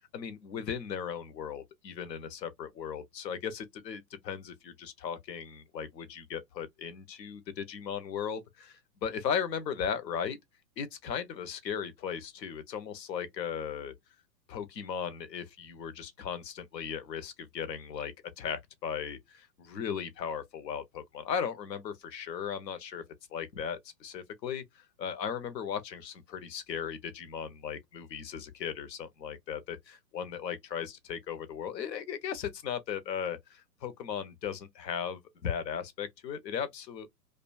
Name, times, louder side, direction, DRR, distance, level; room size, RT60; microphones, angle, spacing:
voice 1, 0.1-10.4 10.8-13.9 14.5-23.0 23.3-37.1, left 7 dB, 80° left, 0.8 m, -37 dB
2.4 x 2.2 x 2.3 m
hypercardioid pair, 120°, 50 cm